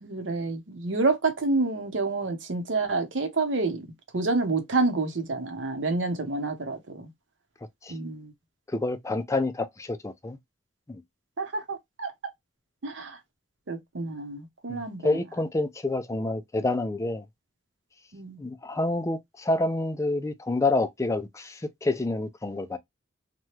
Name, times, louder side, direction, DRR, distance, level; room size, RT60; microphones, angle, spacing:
voice 1, 0.0-3.8 4.1-7.1 7.9-8.3 11.4-12.1 12.8-13.2 13.7-15.1 18.1-18.4, right 3 dB, 80° right, 0.8 m, -28 dB
voice 2, 8.7-10.4 10.9-11.0 14.7-17.2 18.4-22.8, left 2 dB, 15° left, 0.3 m, -28 dB
2.9 x 2.2 x 3.1 m
head